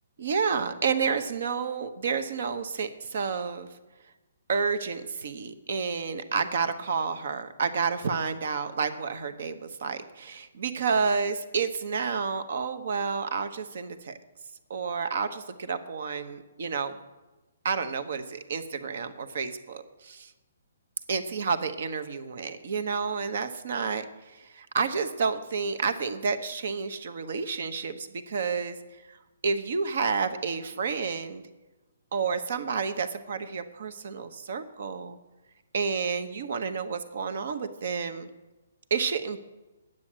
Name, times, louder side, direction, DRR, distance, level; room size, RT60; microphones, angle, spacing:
voice 1, 0.2-3.7 4.5-14.2 14.7-17.0 17.6-20.3 21.1-24.1 24.4-28.8 29.4-31.4 32.1-35.2 35.7-38.3 38.9-39.4, right 5 dB, 60° right, 10 dB, 1.0 m, -30 dB
9.7 x 7.7 x 7.4 m, 1.1 s
hypercardioid pair, 155°, 0 cm